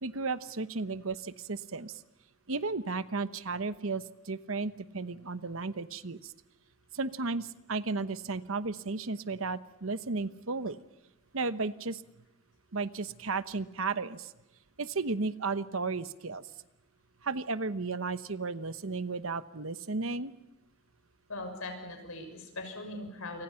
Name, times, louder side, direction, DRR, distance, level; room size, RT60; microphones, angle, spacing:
voice 1, 0.0-2.0 2.5-6.3 6.9-10.8 11.3-12.0 12.7-14.3 14.8-16.5 17.2-20.3, right 3 dB, 65° right, 13 dB, 1.0 m, -34 dB
voice 2, 21.3-23.4, left 2 dB, 70° left, 5 dB, 6.5 m, -40 dB
28.0 x 25.5 x 5.8 m, 0.99 s
head